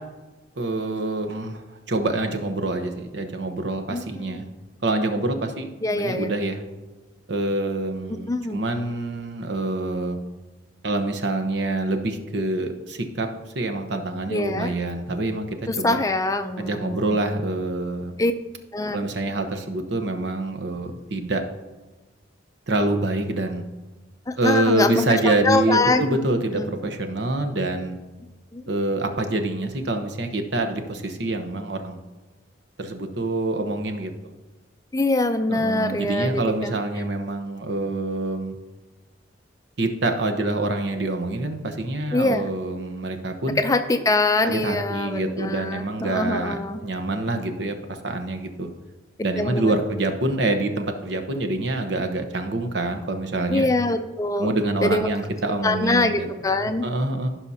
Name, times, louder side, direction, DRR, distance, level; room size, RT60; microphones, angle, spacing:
voice 1, 0.6-1.6 1.9-4.4 4.8-6.6 7.3-10.2 10.8-13.3 13.5-16.0 16.6-18.2 18.9-21.4 22.7-23.6 24.4-28.0 28.7-32.0 32.8-34.3 35.5-38.6 39.8-43.6 44.4-48.7 49.2-53.7 54.4-56.3 56.6-57.3, right 2 dB, 65° right, 5 dB, 0.9 m, -26 dB
voice 2, 5.8-6.3 8.3-8.6 14.3-14.7 15.7-17.2 18.2-18.3 18.7-19.0 24.3-26.3 26.5-26.7 28.5-28.6 34.9-36.8 42.1-42.5 43.6-46.8 49.4-49.8 53.5-54.6 54.8-55.1 55.6-56.9, left 2 dB, 20° left, 8 dB, 0.4 m, -24 dB
15.5 x 5.7 x 2.8 m, 1.2 s
head